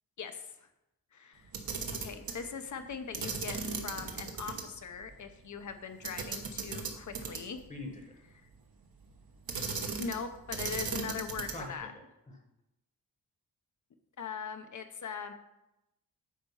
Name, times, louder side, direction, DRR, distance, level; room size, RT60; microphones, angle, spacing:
voice 1, 0.2-0.7 1.1-1.5 1.9-7.6 10.0-11.9 14.2-15.3, left 6 dB, 50° left, 8 dB, 0.8 m, -41 dB
Camera, 1.4-2.4 3.1-4.6 5.0-5.1 6.0-7.6 9.5-10.2 10.5-11.7, right 5 dB, 70° right, 1.2 m, -36 dB
voice 2, 7.7-8.1 11.5-12.4, left 2 dB, 20° left, 2 dB, 1.1 m, -44 dB
9.3 x 4.4 x 5.5 m, 0.90 s
wide cardioid pair, 170°, 37 cm